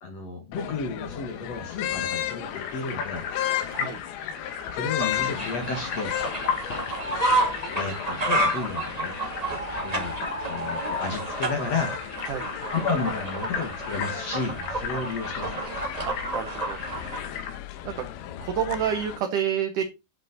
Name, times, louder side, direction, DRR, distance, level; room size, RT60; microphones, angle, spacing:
voice 1, 0.0-3.2 4.7-6.2 7.7-9.1 9.8-10.2 10.5-11.9 12.7-15.7, left 4 dB, 50° left, 4 dB, 2.1 m, -32 dB
sound 1, 0.5-19.2, left 12 dB, 75° left, 2.6 m, -36 dB
sound 2, 2.4-17.5, left 7 dB, 90° left, 4.4 m, -36 dB
sound 3, 5.0-17.2, right 1 dB, 40° right, 0.5 m, -30 dB
voice 2, 16.1-16.8 17.9-18.0 18.4-19.8, right 8 dB, 75° right, 6 dB, 1.9 m, -28 dB
10.5 x 7.6 x 4.1 m, 0.25 s
omnidirectional pair, 5.0 m